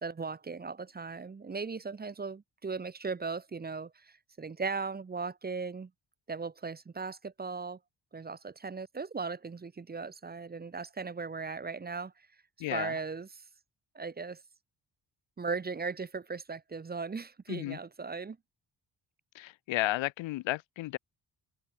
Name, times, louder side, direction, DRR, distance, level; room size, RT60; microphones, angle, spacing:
voice 1, 0.0-5.9 6.3-7.8 8.1-12.3 12.7-13.4 13.9-14.4 15.4-18.4, right 4 dB, 20° right, 0.7 m, -38 dB
voice 2, 12.6-12.9 17.5-17.8 19.3-21.0, left 17 dB, 85° left, 0.6 m, -33 dB
wide cardioid pair, 135°, 45 cm